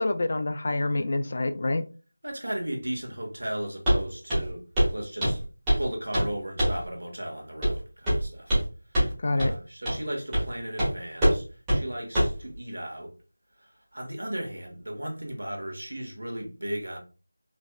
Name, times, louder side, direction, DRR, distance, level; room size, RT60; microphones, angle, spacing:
voice 1, 0.0-1.9 9.2-9.5, left 2 dB, 40° left, 0.3 m, -27 dB
voice 2, 2.2-4.6 4.9-5.4 5.7-8.6 8.9-13.1 13.6-17.0, right 1 dB, 90° right, 1.6 m, -36 dB
Walk footsteps, 3.9-4.0 4.3-4.5 4.8-4.9 5.2-5.9 6.1-6.3 6.6-6.8 7.6-7.8 8.1-8.7 8.9-9.1 9.4-9.5 9.9-10.0 10.3-10.5 10.8-10.9 11.2-11.4 11.7-11.8 12.2-12.4, equal, 10° right, 1.6 m, -23 dB
4.2 x 3.4 x 2.3 m
figure-of-eight pair, 175°, 0 cm